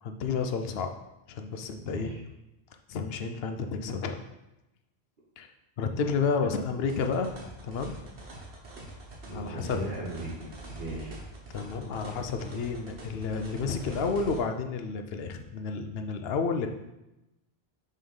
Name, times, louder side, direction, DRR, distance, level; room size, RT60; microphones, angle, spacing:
voice 1, 0.0-0.9 1.3-2.2 2.9-4.2 5.4-5.5 5.8-7.3 7.6-8.0 9.3-9.8 11.5-16.7, left 5 dB, 70° left, 6 dB, 0.8 m, -31 dB
voice 2, 1.8-2.2 9.3-10.5 10.7-11.1, right 1 dB, 55° right, -4 dB, 1.2 m, -37 dB
sound 1, 6.9-14.4, right 2 dB, 90° right, 1.5 m, -44 dB
5.6 x 3.3 x 5.4 m, 0.93 s
omnidirectional pair, 1.1 m